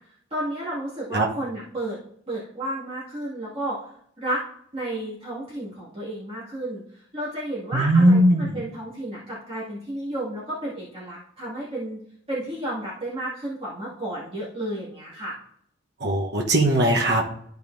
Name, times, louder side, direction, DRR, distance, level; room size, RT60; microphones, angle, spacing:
voice 1, 0.3-2.0 2.3-3.9 4.2-4.4 4.7-12.0 12.3-15.4, right 1 dB, 30° right, -9 dB, 2.2 m, -32 dB
voice 2, 7.7-8.6 16.0-17.2, right 1 dB, 55° right, -2 dB, 1.1 m, -19 dB
12.5 x 5.3 x 2.7 m, 0.67 s
head